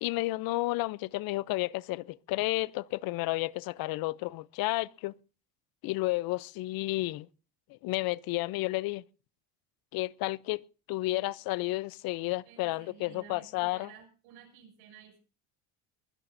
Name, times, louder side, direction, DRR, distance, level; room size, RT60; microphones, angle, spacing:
voice 1, 0.0-5.1 5.8-7.3 7.8-9.0 9.9-10.6 10.9-13.9, left 20 dB, 60° left, 0.6 m, -31 dB
voice 2, 12.4-15.2, right 8 dB, 75° right, 6.8 m, -53 dB
22.5 x 16.5 x 2.6 m
cardioid pair, 135°, 40 cm